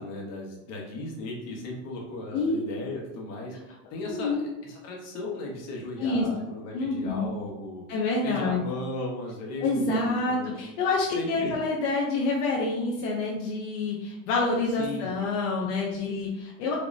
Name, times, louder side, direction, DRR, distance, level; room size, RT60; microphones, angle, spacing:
voice 1, 0.0-3.6 3.9-7.9 8.2-10.5 11.1-11.6 14.8-15.2, left 2 dB, 40° left, -1 dB, 1.3 m, -36 dB
voice 2, 4.1-4.4 6.0-6.3 6.7-7.3 7.9-8.6 9.6-16.8, left 3 dB, 65° left, -2 dB, 0.9 m, -27 dB
5.1 x 2.9 x 2.7 m, 0.95 s
supercardioid pair, 140°, 38 cm